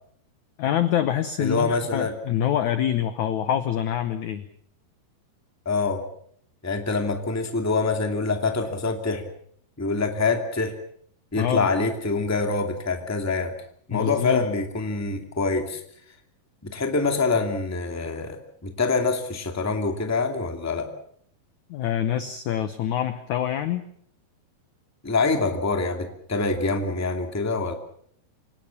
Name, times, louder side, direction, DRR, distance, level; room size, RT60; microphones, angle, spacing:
voice 1, 0.6-4.5 11.4-11.7 13.9-14.5 21.7-23.9, left 10 dB, 70° left, 11 dB, 1.8 m, -25 dB
voice 2, 1.4-2.1 5.6-6.0 6.6-9.3 9.8-10.8 11.3-13.5 13.9-15.8 16.6-20.9 25.0-27.7, left 3 dB, 5° left, 4 dB, 1.5 m, -25 dB
27.0 x 18.5 x 7.2 m, 0.65 s
omnidirectional pair, 4.7 m